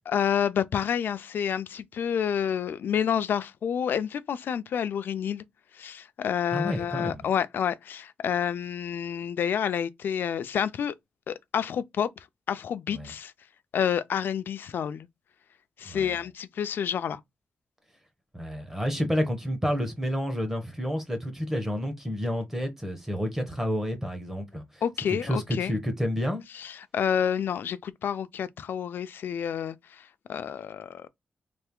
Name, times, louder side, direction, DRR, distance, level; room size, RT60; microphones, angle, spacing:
voice 1, 0.1-5.4 5.7-10.9 11.3-13.3 13.7-15.1 15.8-17.2 24.8-25.7 26.5-31.1, left 8 dB, 75° left, 0.4 m, -29 dB
voice 2, 6.5-7.3 12.9-13.1 15.8-16.2 18.3-24.8 25.1-26.4, equal, 10° right, 0.9 m, -30 dB
3.3 x 2.4 x 3.6 m
wide cardioid pair, 155°, 4 cm